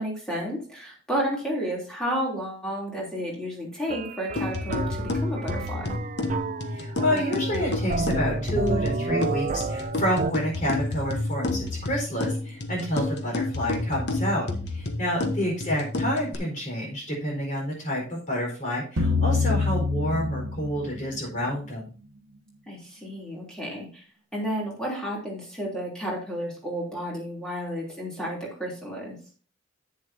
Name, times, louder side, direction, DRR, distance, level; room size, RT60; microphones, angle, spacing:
voice 1, 0.0-6.0 22.7-24.1 24.3-29.1, equal, 5° left, -4 dB, 3.3 m, -32 dB
sound 1, 3.9-10.3, right 4 dB, 35° right, 0.4 m, -31 dB
sound 2, 4.4-16.4, left 2 dB, 55° left, 1.2 m, -30 dB
voice 2, 6.7-14.5 14.7-21.9, equal, 35° left, -1 dB, 4.6 m, -29 dB
sound 3, 19.0-21.2, left 3 dB, 85° right, 1.0 m, -25 dB
11.0 x 8.8 x 2.8 m, 0.38 s
head